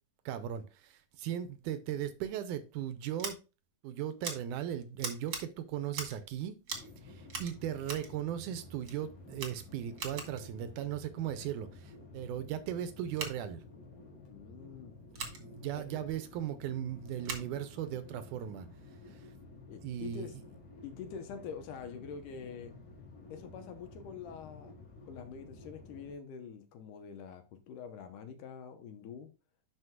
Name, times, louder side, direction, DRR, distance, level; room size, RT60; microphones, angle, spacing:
voice 1, 0.3-3.4 3.8-6.6 7.0-13.6 15.1-18.7 19.1-19.3 19.8-20.3, right 10 dB, 80° right, 2.0 m, -38 dB
Scissors, 3.2-3.3 4.2-4.4 5.0-5.4 5.9-6.2 6.6-6.9 7.3-8.1 8.8-9.0 9.3-10.4 13.1-13.3 15.1-15.4 17.2-17.5, right 5 dB, 50° right, 1.6 m, -40 dB
sound 1, 6.7-26.1, left 2 dB, 55° left, 2.7 m, -52 dB
voice 2, 14.3-14.9 15.7-16.0 18.0-18.1 19.7-20.3 20.8-22.7 23.3-24.7 25.1-29.3, left 6 dB, 80° left, 2.5 m, -45 dB
11.0 x 4.7 x 2.4 m
omnidirectional pair, 3.8 m